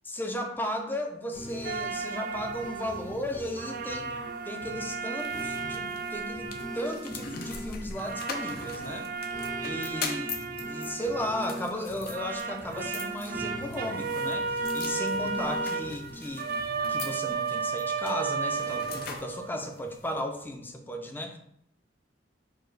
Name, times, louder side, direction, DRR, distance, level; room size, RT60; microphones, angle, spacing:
voice 1, 0.1-4.1 4.4-9.1 9.6-16.6 16.9-21.4, left 1 dB, 10° left, 3 dB, 0.5 m, -35 dB
sound 1, 1.3-17.3, equal, 80° left, 1.1 m, -43 dB
sound 2, 1.6-3.3 3.6-7.7 8.0-11.8 12.1-19.6, right 5 dB, 55° right, 0.4 m, -34 dB
sound 3, 5.2-20.1, left 5 dB, 55° left, 0.6 m, -43 dB
4.7 x 2.3 x 4.7 m, 0.72 s
head